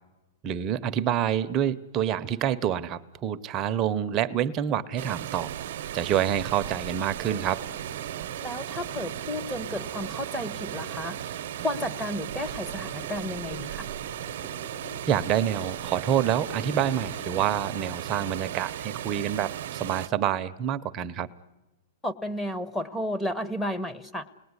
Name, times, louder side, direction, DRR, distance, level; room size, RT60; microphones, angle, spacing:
voice 1, 0.4-5.5 5.9-7.6 15.1-21.3, right 9 dB, 30° right, 10 dB, 0.8 m, -27 dB
Water, 5.0-20.1, right 11 dB, 65° right, 0.9 m, -36 dB
sound 1, 5.7-17.7, left 4 dB, 35° left, 4.0 m, -48 dB
voice 2, 8.4-13.9 22.0-24.3, left 1 dB, 5° left, 9 dB, 1.2 m, -33 dB
29.5 x 20.0 x 9.7 m, 1.1 s
hypercardioid pair, 150°, 0 cm